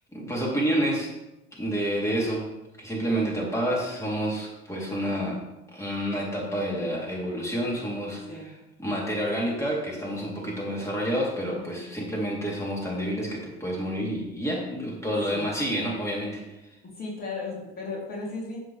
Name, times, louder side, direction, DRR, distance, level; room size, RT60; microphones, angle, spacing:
voice 1, 0.1-1.1 1.5-2.5 2.8-5.4 5.7-8.4 8.8-16.4, equal, 10° left, -4 dB, 3.3 m, -29 dB
voice 2, 16.8-18.6, left 3 dB, 30° left, -3 dB, 3.4 m, -35 dB
14.0 x 7.5 x 3.4 m, 0.93 s
figure-of-eight pair, 60°, 32 cm